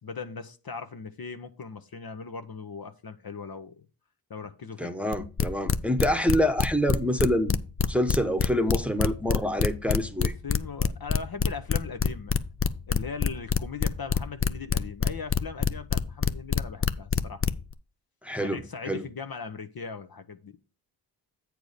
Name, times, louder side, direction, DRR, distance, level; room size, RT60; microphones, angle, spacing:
voice 1, 0.0-3.9 4.3-4.9 10.4-12.3 12.9-17.4 18.4-20.6, left 5 dB, 45° left, 1.0 m, -39 dB
voice 2, 4.8-7.5 7.8-10.3 18.2-19.1, equal, 5° right, 1.1 m, -26 dB
sound 1, 5.1-17.7, left 6 dB, 25° left, 0.6 m, -25 dB
8.1 x 4.8 x 5.0 m
cardioid pair, 60°, 50 cm